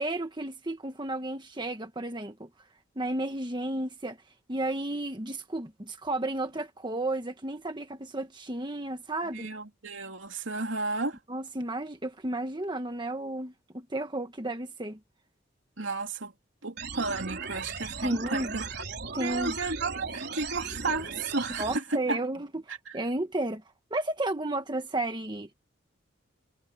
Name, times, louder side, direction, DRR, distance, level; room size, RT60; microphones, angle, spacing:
voice 1, 0.0-2.5 2.9-4.2 4.5-9.5 11.3-15.0 18.0-18.6 19.1-19.5 21.6-23.6 23.9-25.7, right 1 dB, 25° right, 1.5 m, -33 dB
voice 2, 9.3-11.2 15.8-16.3 16.6-18.8 19.2-22.2 22.7-23.0, right 3 dB, 85° right, 2.9 m, -33 dB
sound 1, 16.8-21.8, right 5 dB, 60° right, 4.4 m, -37 dB
head